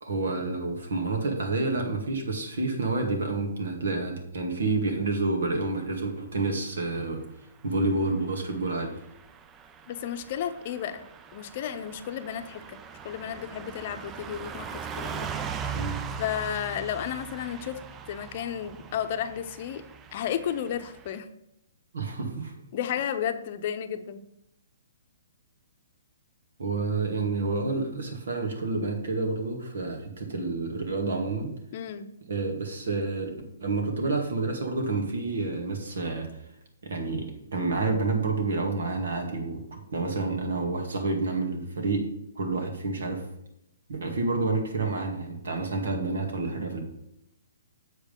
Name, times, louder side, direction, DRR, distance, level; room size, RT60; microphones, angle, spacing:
voice 1, 0.0-7.2 7.6-9.0 15.7-16.0 21.9-22.5 26.6-31.5 32.3-33.3 33.6-36.3 36.8-42.0 42.4-43.2 43.9-46.8, right 3 dB, 70° right, 2 dB, 2.1 m, -29 dB
Car passing by / Truck, 8.2-21.2, right 6 dB, 20° right, 0.5 m, -40 dB
voice 2, 9.9-11.0 11.3-12.8 13.0-15.3 16.2-17.8 18.1-19.8 20.1-21.3 22.7-24.2 31.7-32.1, left 9 dB, 45° left, 9 dB, 0.7 m, -32 dB
7.4 x 5.1 x 5.3 m, 0.82 s
hypercardioid pair, 135°, 0 cm